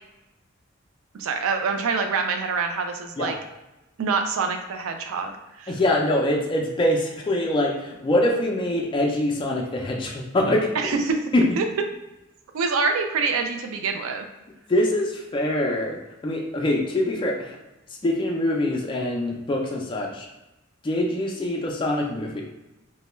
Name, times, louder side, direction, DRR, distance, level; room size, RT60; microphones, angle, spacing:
voice 1, 1.1-3.4 4.0-5.8 10.7-11.2 11.6-11.7 12.5-14.3, right 4 dB, 80° right, 5 dB, 0.4 m, -25 dB
voice 2, 5.7-10.7 11.3-11.4 14.7-16.0 16.2-17.5 18.0-20.3 20.8-22.4, left 1 dB, 25° left, -1 dB, 0.3 m, -24 dB
2.2 x 2.1 x 3.0 m, 0.98 s
head